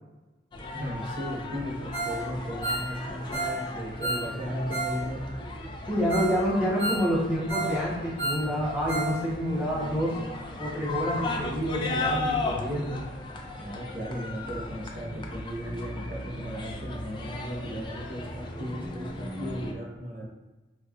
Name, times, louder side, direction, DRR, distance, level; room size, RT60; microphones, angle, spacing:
sound 1, 0.5-19.7, left 2 dB, 25° left, 0.3 m, -36 dB
voice 1, 0.7-5.5 13.6-20.3, equal, 50° right, -4 dB, 0.9 m, -36 dB
Ringtone, 1.9-2.2 2.5-5.0 5.3-5.4 5.8-5.9 6.1-6.4 6.6-7.8 8.0-9.2 9.4-9.5 10.0-10.1, right 2 dB, 25° right, 1.5 m, -32 dB
voice 2, 5.9-10.2 10.6-13.0, equal, 10° right, -7 dB, 0.9 m, -28 dB
4.1 x 2.3 x 2.3 m, 1.1 s
head